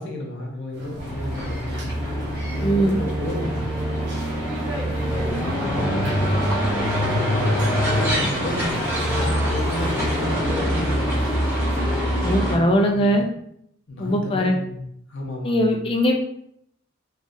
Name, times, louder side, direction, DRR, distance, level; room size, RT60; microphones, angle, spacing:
voice 1, 0.0-1.9 2.7-3.8 4.8-6.4 7.0-11.4 12.4-13.2 13.9-14.8 15.1-15.8, left 1 dB, 70° left, 0 dB, 0.7 m, -32 dB
sound 1, 0.7-12.3, right 1 dB, 55° right, 0.8 m, -39 dB
sound 2, 1.0-12.6, equal, 15° right, 1.5 m, -24 dB
voice 2, 2.6-3.0 12.2-13.2 14.0-14.5 15.4-16.1, equal, 25° left, 2 dB, 0.4 m, -20 dB
3.5 x 2.4 x 2.5 m, 0.73 s
head